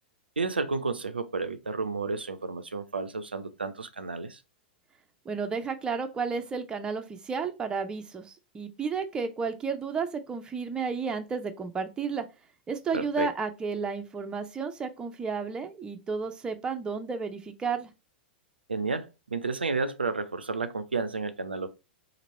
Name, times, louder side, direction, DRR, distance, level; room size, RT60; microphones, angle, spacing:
voice 1, 0.4-4.4 12.9-13.3 18.7-21.7, right 4 dB, 85° right, 0.4 m, -31 dB
voice 2, 5.3-12.2 12.7-17.9, right 5 dB, 15° right, 0.5 m, -32 dB
2.9 x 2.6 x 4.0 m
figure-of-eight pair, 100°, 5 cm